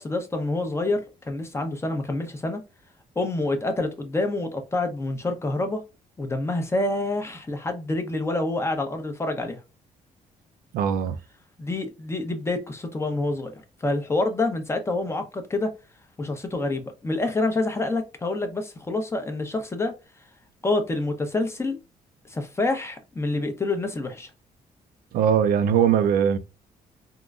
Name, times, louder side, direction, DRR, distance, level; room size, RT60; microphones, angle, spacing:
voice 1, 0.0-2.6 3.2-5.8 6.2-9.6 11.6-15.7 16.2-19.9 20.6-21.8 22.2-24.3, left 2 dB, 20° left, 0.7 m, -27 dB
voice 2, 10.7-11.2 25.1-26.4, right 8 dB, 90° right, 0.4 m, -20 dB
3.6 x 2.1 x 2.3 m
cardioid pair, 100°, 15 cm